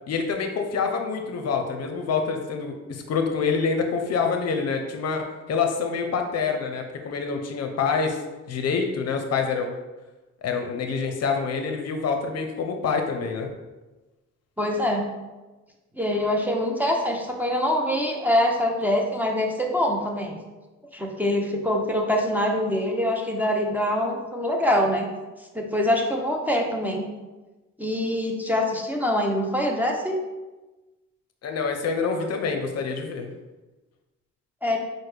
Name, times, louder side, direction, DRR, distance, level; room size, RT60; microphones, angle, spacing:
voice 1, 0.1-8.2 8.5-9.7 10.4-13.5 31.4-33.3, left 5 dB, 55° left, 4 dB, 0.6 m, -26 dB
voice 2, 14.6-15.1 16.0-20.4 20.9-25.1 25.5-27.1 27.8-30.2 34.6-34.8, left 1 dB, 5° right, 0 dB, 0.6 m, -24 dB
6.0 x 2.1 x 3.3 m, 1.1 s
cardioid pair, 90°, 30 cm